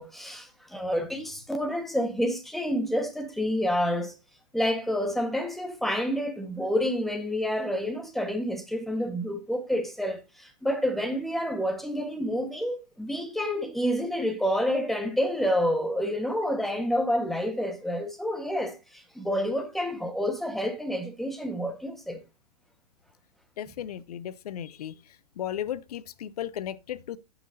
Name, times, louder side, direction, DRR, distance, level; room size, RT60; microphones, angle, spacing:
voice 1, 0.0-4.1 4.5-22.2, equal, ahead, 1.3 m, -29 dB
voice 2, 23.6-25.0 25.4-27.2, left 10 dB, 65° left, 0.7 m, -35 dB
14.0 x 6.0 x 2.7 m
hypercardioid pair, 120°, 21 cm